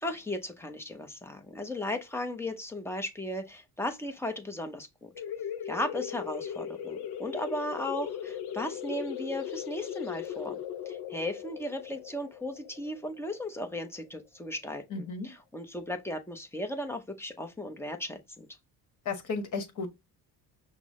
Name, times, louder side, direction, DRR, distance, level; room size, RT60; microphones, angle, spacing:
voice 1, 0.0-5.1 5.6-18.5, left 1 dB, 5° left, 0.6 m, -36 dB
sound 1, 5.2-14.5, left 9 dB, 70° left, 0.7 m, -38 dB
voice 2, 14.9-15.3 19.0-19.9, left 4 dB, 50° left, 1.2 m, -34 dB
5.9 x 2.1 x 3.6 m
cardioid pair, 125°, 39 cm